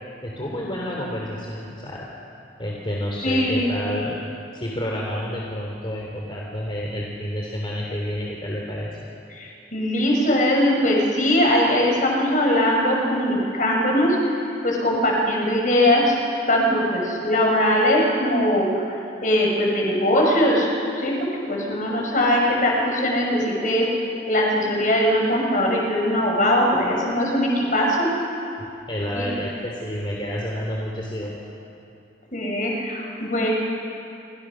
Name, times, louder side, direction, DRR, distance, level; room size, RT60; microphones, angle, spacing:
voice 1, 0.2-2.1 2.6-4.2 4.5-8.9 26.7-27.0 28.9-31.4, equal, 30° left, -2 dB, 3.2 m, -29 dB
voice 2, 3.2-3.8 9.3-16.1 16.5-19.0 19.2-20.7 20.9-23.9 24.3-28.1 29.2-29.3 32.3-33.5, left 1 dB, 45° left, -1 dB, 6.2 m, -21 dB
29.0 x 25.5 x 6.3 m, 2.6 s
head